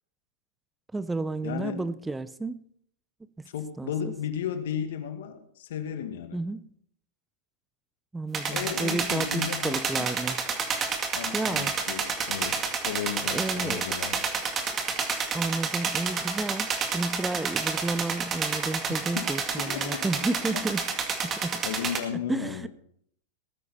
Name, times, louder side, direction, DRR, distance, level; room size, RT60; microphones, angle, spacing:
voice 1, 0.9-2.7 3.4-3.5 3.8-4.1 6.3-6.7 8.1-10.4 11.3-11.7 13.3-13.9 15.3-20.9 21.2-21.7 22.3-22.7, right 2 dB, 10° right, 0.5 m, -31 dB
voice 2, 1.4-1.8 3.5-6.4 8.5-10.1 11.1-14.2 18.9-19.3 19.6-20.1 21.6-22.7, left 8 dB, 70° left, 2.0 m, -34 dB
sound 1, 8.3-22.0, right 5 dB, 25° right, 2.0 m, -30 dB
19.0 x 9.5 x 4.3 m
hypercardioid pair, 110°, 0 cm